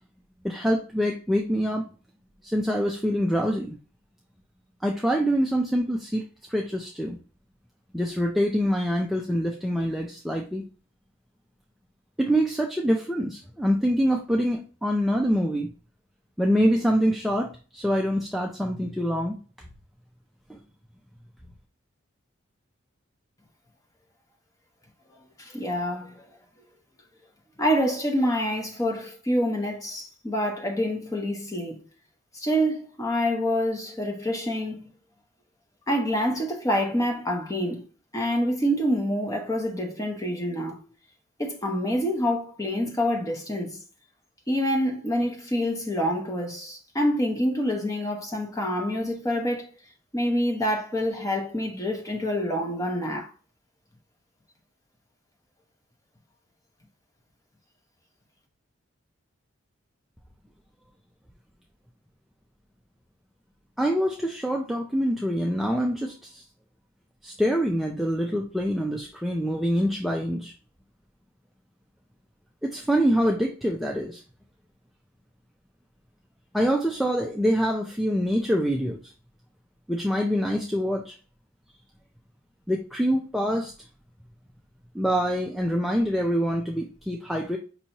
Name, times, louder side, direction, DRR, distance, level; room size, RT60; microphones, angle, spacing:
voice 1, 0.4-1.9 2.4-3.8 4.8-7.2 7.9-10.6 12.2-15.7 16.4-19.3 20.5-20.6 63.8-66.4 67.2-70.5 72.6-74.2 76.5-79.1 79.9-81.1 82.7-83.7 84.9-87.6, equal, ahead, 0.3 m, -25 dB
voice 2, 25.1-26.3 27.6-31.8 32.3-34.9 35.9-37.9 38.1-40.8 41.4-43.8 44.5-49.7 50.1-53.3, equal, 15° left, 0.9 m, -27 dB
5.4 x 2.9 x 2.8 m
head